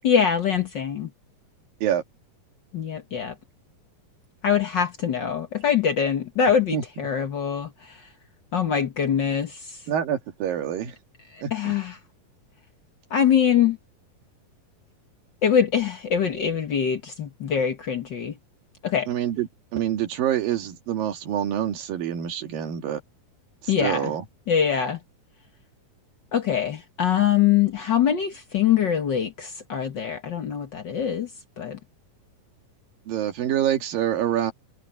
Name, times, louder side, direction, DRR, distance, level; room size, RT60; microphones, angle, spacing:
voice 1, 0.0-1.1 2.7-3.3 4.4-8.1 8.5-9.8 11.3-12.0 13.1-13.8 15.4-18.4 18.8-19.1 23.7-24.1 24.5-25.0 26.3-31.3 31.6-31.8, left 8 dB, 60° left, 1.1 m, -23 dB
voice 2, 9.9-11.0 11.4-11.7 19.1-23.0 23.6-24.2 33.1-34.5, right 10 dB, 75° right, 3.6 m, -26 dB
omnidirectional pair, 4.0 m